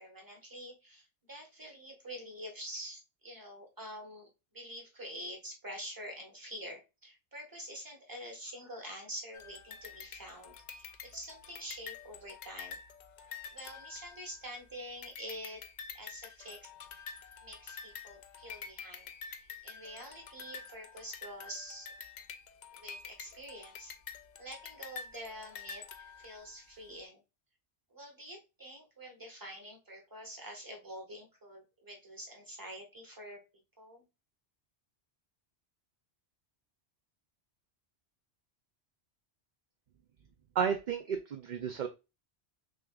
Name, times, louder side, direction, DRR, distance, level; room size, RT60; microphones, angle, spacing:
voice 1, 0.0-4.3 4.5-12.8 13.5-15.6 15.9-16.7 17.4-21.9 22.7-23.9 24.4-27.2 27.9-33.4 33.8-34.1, equal, 20° right, 2 dB, 1.1 m, -46 dB
sound 1, 9.3-14.6 15.0-26.6, left 6 dB, 55° left, 0.5 m, -48 dB
voice 2, 40.6-41.9, right 7 dB, 55° right, 6 dB, 0.5 m, -32 dB
6.1 x 2.4 x 2.3 m, 0.27 s
omnidirectional pair, 1.1 m